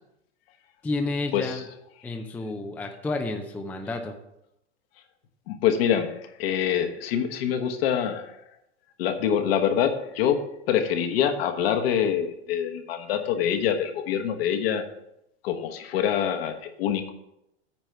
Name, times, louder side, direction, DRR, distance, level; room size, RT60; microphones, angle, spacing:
voice 1, 0.8-1.7 2.0-4.2, left 2 dB, 5° left, 4 dB, 0.4 m, -30 dB
voice 2, 5.5-8.4 9.0-14.9 15.4-17.1, left 9 dB, 60° left, 6 dB, 1.3 m, -25 dB
9.0 x 4.5 x 6.7 m, 0.83 s
supercardioid pair, 140°, 34 cm